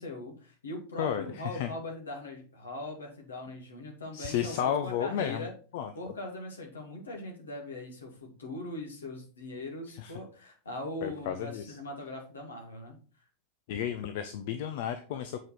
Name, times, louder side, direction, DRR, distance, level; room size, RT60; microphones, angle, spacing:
voice 1, 0.0-5.5 5.9-13.0, left 2 dB, 70° left, 1 dB, 2.6 m, -40 dB
voice 2, 1.0-1.7 4.1-5.5 5.7-5.9 10.0-10.1 11.0-11.7 13.7-15.4, left 9 dB, 50° left, 9 dB, 0.7 m, -32 dB
7.8 x 5.2 x 4.6 m, 0.39 s
figure-of-eight pair, 90°, 0 cm